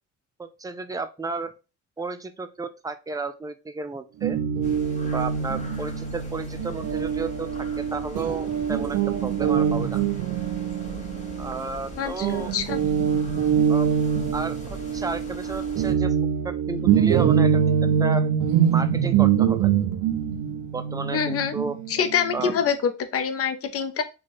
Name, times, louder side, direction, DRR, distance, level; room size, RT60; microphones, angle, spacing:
voice 1, 0.4-1.5 2.0-4.4 5.0-10.0 11.0-11.1 11.4-12.5 13.7-13.9 14.3-16.1 16.4-18.3 18.7-19.7 20.7-21.8 22.3-22.5, right 3 dB, 10° right, 9 dB, 0.4 m, -32 dB
Guitar, 4.2-11.9 12.2-22.6, right 8 dB, 90° right, 0.5 m, -24 dB
sound 1, 4.6-15.9, left 2 dB, 25° left, 1.1 m, -41 dB
voice 2, 12.0-12.8 21.1-21.6 21.9-24.0, left 7 dB, 50° left, 9 dB, 0.6 m, -25 dB
3.1 x 2.3 x 4.1 m, 0.30 s
cardioid pair, 90°, 30 cm